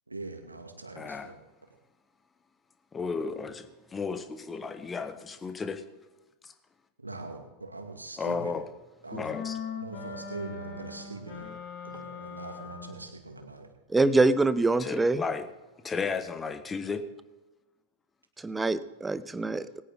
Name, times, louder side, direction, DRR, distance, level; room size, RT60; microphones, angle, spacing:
voice 1, 0.1-1.4 7.0-8.4 9.0-9.3 9.8-11.5 11.8-13.7, right 3 dB, 80° right, 4 dB, 2.2 m, -42 dB
voice 2, 0.9-1.3 2.9-5.8 6.4-6.5 8.2-8.7 9.1-9.6 11.4-11.6 14.8-15.5 15.8-17.0, left 5 dB, 15° left, 8 dB, 1.2 m, -34 dB
sound 1, 9.3-13.1, left 6 dB, 40° left, 3.0 m, -40 dB
voice 3, 13.9-15.2 18.4-19.8, right 3 dB, 10° right, 16 dB, 0.6 m, -25 dB
20.5 x 9.3 x 3.8 m, 1.1 s
figure-of-eight pair, 90°, 0 cm